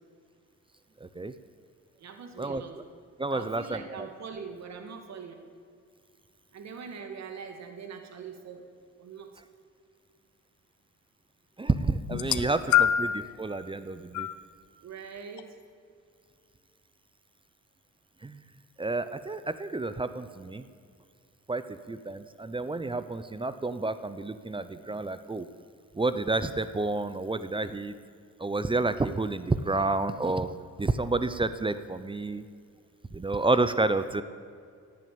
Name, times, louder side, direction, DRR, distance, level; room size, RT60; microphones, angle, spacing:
voice 1, 1.0-1.3 2.4-2.6 3.2-4.1 11.6-14.3 18.2-18.4 18.8-20.6 21.5-25.5 25.9-28.0 28.4-30.5 30.8-32.4 33.1-34.2, right 2 dB, 15° right, 12 dB, 0.7 m, -30 dB
voice 2, 2.0-2.8 3.3-5.3 6.5-8.7 9.0-9.3 12.2-12.7 14.8-15.6, right 6 dB, 60° right, 5 dB, 2.2 m, -42 dB
sound 1, 12.1-13.3 14.1-14.3 15.4-15.5, left 10 dB, 75° left, 0.8 m, -24 dB
16.5 x 9.5 x 8.7 m, 2.3 s
cardioid pair, 90°, 30 cm